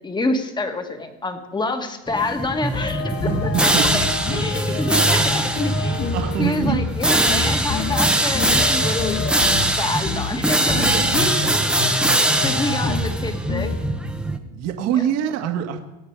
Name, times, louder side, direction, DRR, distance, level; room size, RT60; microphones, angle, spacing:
voice 1, 0.0-4.1 4.3-12.0 12.4-13.7 14.9-15.0, left 2 dB, 10° left, 6 dB, 1.8 m, -27 dB
sound 1, 2.1-14.4, right 1 dB, 5° right, 1.1 m, -22 dB
sound 2, 2.7-13.9, left 4 dB, 40° left, 2.4 m, -28 dB
voice 2, 3.2-4.1 4.7-4.9 6.1-6.9 8.7-8.8 10.8-11.3 14.5-15.8, right 9 dB, 45° right, 5 dB, 1.8 m, -25 dB
24.0 x 8.9 x 4.8 m, 1.0 s
supercardioid pair, 120°, 34 cm